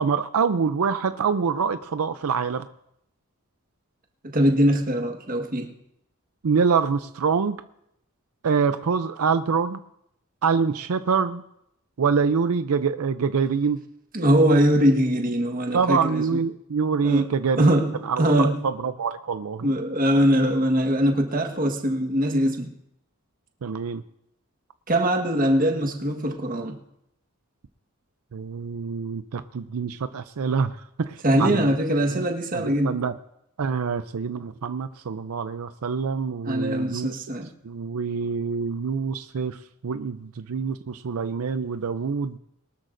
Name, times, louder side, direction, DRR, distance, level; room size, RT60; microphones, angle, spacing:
voice 1, 0.0-2.6 6.4-7.6 8.4-9.8 10.4-11.4 12.0-13.8 15.7-17.7 18.0-19.7 23.6-24.0 28.3-31.6 32.1-32.2 32.5-33.1 33.6-37.1 37.6-42.4, right 5 dB, 85° right, 11 dB, 0.5 m, -25 dB
voice 2, 4.2-5.7 14.1-16.4 17.0-17.3 17.6-18.6 19.6-22.7 24.9-26.8 31.2-33.0 36.4-37.5, equal, 40° right, 4 dB, 1.5 m, -22 dB
22.5 x 12.5 x 2.6 m, 0.78 s
head